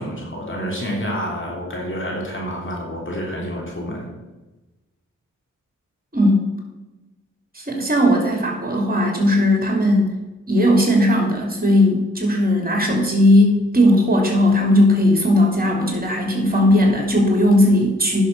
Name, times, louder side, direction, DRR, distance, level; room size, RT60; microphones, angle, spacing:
voice 1, 0.0-4.1, equal, 40° left, -1 dB, 3.2 m, -28 dB
voice 2, 6.1-6.5 7.5-10.1 10.5-18.2, left 1 dB, 30° right, 1 dB, 3.0 m, -17 dB
10.5 x 6.5 x 5.4 m, 1.1 s
cardioid pair, 50°, 30 cm